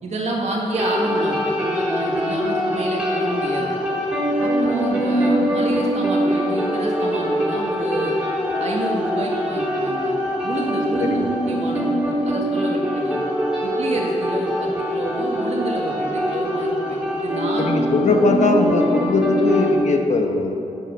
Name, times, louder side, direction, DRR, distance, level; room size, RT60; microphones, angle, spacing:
voice 1, 0.0-3.8 4.4-8.2 8.6-10.2 10.4-11.9 12.2-13.2 13.6-17.7, right 2 dB, 60° right, -1 dB, 1.8 m, -28 dB
sound 1, 0.7-19.7, equal, 10° right, 3.5 m, -23 dB
voice 2, 17.6-20.5, left 3 dB, 65° left, 3 dB, 1.3 m, -19 dB
11.0 x 8.2 x 7.3 m, 2.7 s
wide cardioid pair, 110°, 13 cm